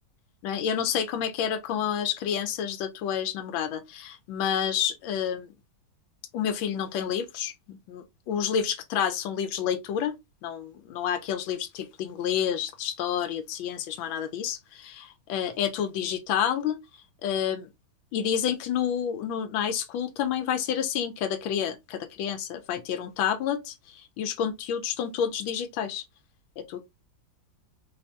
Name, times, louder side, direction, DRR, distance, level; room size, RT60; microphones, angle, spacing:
voice 1, 0.4-5.5 6.3-10.1 10.4-16.8 17.2-17.7 18.1-26.0 26.6-26.8, left 8 dB, 90° left, 1.4 m, -29 dB
4.3 x 2.7 x 3.2 m
omnidirectional pair, 2.1 m